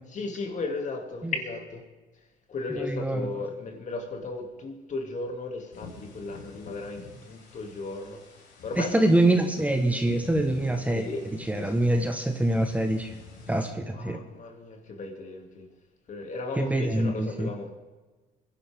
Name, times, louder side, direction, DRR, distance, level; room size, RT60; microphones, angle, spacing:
voice 1, 0.1-1.8 2.1-9.0 10.9-11.3 11.5-12.1 13.9-15.7 16.1-17.7, left 3 dB, 45° left, 2.6 m, -36 dB
voice 2, 2.7-3.2 8.8-11.0 11.5-13.1 13.5-14.2 16.6-17.5, right 1 dB, 10° right, 1.2 m, -25 dB
sound 1, 5.7-13.7, left 4 dB, 85° left, 5.3 m, -47 dB
22.0 x 11.0 x 3.6 m
cardioid pair, 110°, 17 cm